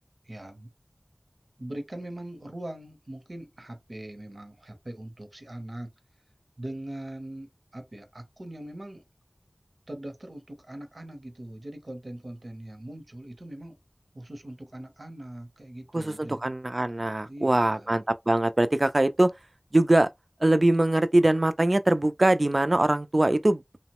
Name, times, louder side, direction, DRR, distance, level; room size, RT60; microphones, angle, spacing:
voice 1, 0.2-0.7 1.6-5.9 6.6-9.0 9.9-13.8 14.1-16.4 17.3-18.0, right 1 dB, 65° right, 0.7 m, -41 dB
voice 2, 15.9-19.3 19.7-20.1 20.4-23.6, right 1 dB, 50° right, 0.3 m, -22 dB
2.9 x 2.1 x 2.9 m
wide cardioid pair, 40°, 0 cm